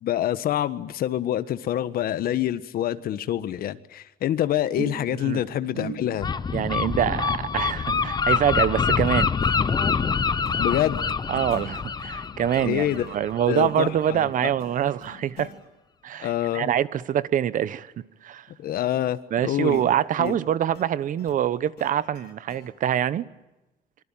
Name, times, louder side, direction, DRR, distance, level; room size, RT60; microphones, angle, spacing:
voice 1, 0.0-6.3 10.6-11.0 12.6-13.1 13.5-14.5 16.2-16.7 18.6-19.8 20.2-20.4, left 12 dB, 60° left, 1.5 m, -26 dB
sound 1, 4.8-11.4 11.6-12.0 12.4-12.5, right 8 dB, 90° right, 8.0 m, -42 dB
Gull seagull, 6.2-13.7, left 5 dB, 25° left, 0.9 m, -25 dB
voice 2, 6.5-9.3 11.3-15.5 16.0-18.5 19.3-23.2, right 10 dB, 50° right, 1.1 m, -25 dB
sound 2, 9.0-15.6 19.3-22.7, left 6 dB, 90° left, 6.2 m, -50 dB
25.5 x 24.0 x 8.9 m
cardioid pair, 155°, 17 cm